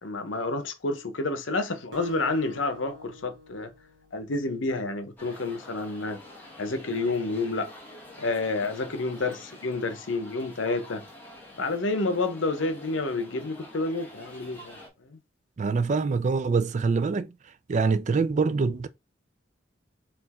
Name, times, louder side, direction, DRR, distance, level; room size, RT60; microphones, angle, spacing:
voice 1, 0.0-3.7 4.1-6.2 6.6-7.7 8.2-11.0 11.6-14.8 15.1-15.2, left 3 dB, 80° left, 0.8 m, -29 dB
Acoustic guitar, 1.9-4.7, left 2 dB, 80° right, 0.9 m, -46 dB
sound 1, 5.2-14.9, left 1 dB, 10° left, 1.4 m, -47 dB
voice 2, 15.6-17.3 17.7-18.9, right 4 dB, 40° right, 0.4 m, -24 dB
4.3 x 2.5 x 4.2 m
head